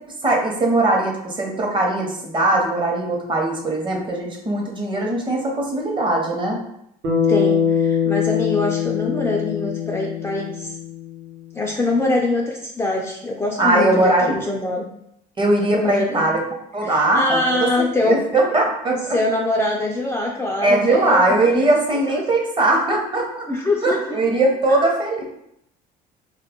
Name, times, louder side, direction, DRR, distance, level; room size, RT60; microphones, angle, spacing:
voice 1, 0.2-6.6 13.6-14.3 15.4-16.4 16.7-19.0 20.6-23.5 23.8-25.2, right 2 dB, 25° right, 0 dB, 0.8 m, -20 dB
Bass guitar, 7.0-11.4, left 7 dB, 55° right, 0.9 m, -22 dB
voice 2, 7.3-10.7 11.5-14.9 15.7-16.3 16.8-18.2 18.9-21.6 22.1-22.2 23.5-24.0 24.7-24.8, left 2 dB, 15° left, -2 dB, 0.4 m, -23 dB
2.3 x 2.1 x 3.5 m, 0.76 s
supercardioid pair, 85°, 19 cm